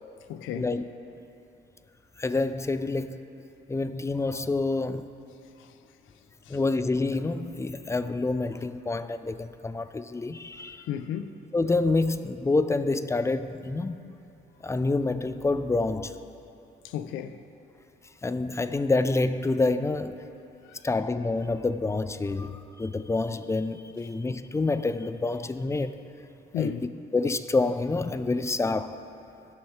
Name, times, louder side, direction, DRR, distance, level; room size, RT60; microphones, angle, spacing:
voice 1, 0.3-0.7 5.6-5.8 6.4-6.6 10.6-11.4 16.8-17.4 20.6-20.9 26.5-26.9, left 9 dB, 90° left, 0.5 m, -34 dB
voice 2, 2.2-3.2 3.7-5.1 6.5-10.8 11.5-14.2 14.6-16.2 18.2-20.3 20.8-26.0 26.6-26.7 27.1-29.0, left 3 dB, 15° left, 0.4 m, -27 dB
17.5 x 6.3 x 3.2 m
cardioid pair, 90°, 20 cm